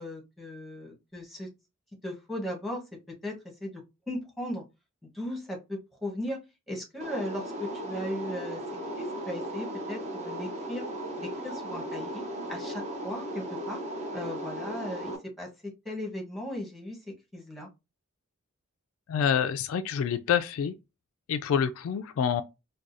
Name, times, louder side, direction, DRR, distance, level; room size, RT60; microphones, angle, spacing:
voice 1, 0.0-1.5 2.0-2.8 3.2-3.3 3.6-3.7 4.1-4.6 5.0-6.4 6.7-8.6 9.0-10.9 11.2-12.2 12.5-13.8 14.1-15.5 15.8-17.0 17.3-17.7, left 1 dB, ahead, 1.1 m, -37 dB
sound 1, 7.0-15.2, right 1 dB, 35° right, 0.7 m, -36 dB
voice 2, 19.1-20.7 21.3-22.4, left 8 dB, 70° left, 0.3 m, -27 dB
4.7 x 2.3 x 2.6 m
head